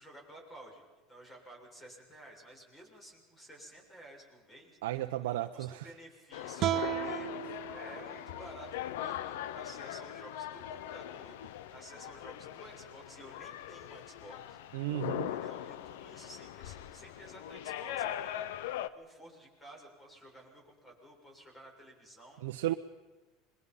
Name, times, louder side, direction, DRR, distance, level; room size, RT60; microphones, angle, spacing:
voice 1, 0.0-14.6 15.3-18.5 18.8-22.4, right 1 dB, 20° left, 1 dB, 7.2 m, -53 dB
voice 2, 4.8-5.8 14.7-15.3 22.4-22.7, right 15 dB, 90° right, 5 dB, 0.8 m, -34 dB
sound 1, 6.3-18.9, left 11 dB, 85° left, 0.8 m, -40 dB
sound 2, 6.6-9.8, right 13 dB, 50° right, 1.1 m, -37 dB
27.0 x 22.0 x 5.5 m, 1.2 s
supercardioid pair, 120°, 0 cm